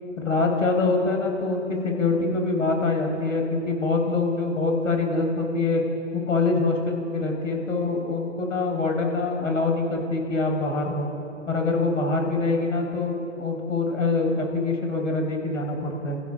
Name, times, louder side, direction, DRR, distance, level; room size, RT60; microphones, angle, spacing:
voice 1, 0.2-5.8 6.1-11.1 11.5-16.2, left 3 dB, 70° left, 1 dB, 5.5 m, -24 dB
28.0 x 15.0 x 7.2 m, 2.7 s
figure-of-eight pair, 125°, 39 cm